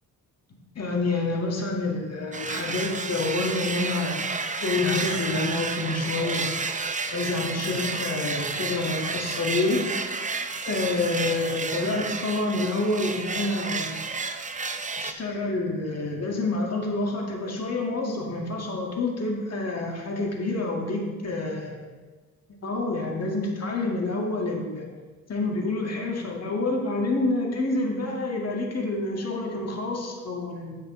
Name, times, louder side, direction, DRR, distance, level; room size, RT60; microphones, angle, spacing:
voice 1, 0.8-4.3 4.6-9.8 10.7-14.0 15.0-21.8 22.6-24.9 25.3-30.8, left 2 dB, 45° left, 0 dB, 1.8 m, -28 dB
sound 1, 2.3-15.1, right 4 dB, 20° right, 0.5 m, -31 dB
9.1 x 8.8 x 3.1 m, 1.3 s
cardioid pair, 85°, 35 cm